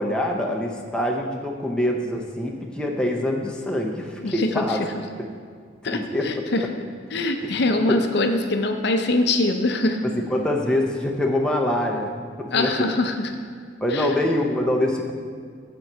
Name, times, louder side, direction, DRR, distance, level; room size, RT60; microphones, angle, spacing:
voice 1, 0.0-4.8 5.2-5.3 5.9-6.3 7.4-7.5 7.9-8.0 10.0-12.1 12.4-12.9 13.8-15.1, left 1 dB, 5° left, -1 dB, 0.6 m, -24 dB
voice 2, 4.2-4.8 5.8-6.7 7.1-10.0 12.5-13.3 13.9-14.2, left 2 dB, 55° left, 5 dB, 0.6 m, -23 dB
8.5 x 4.5 x 6.6 m, 2.1 s
head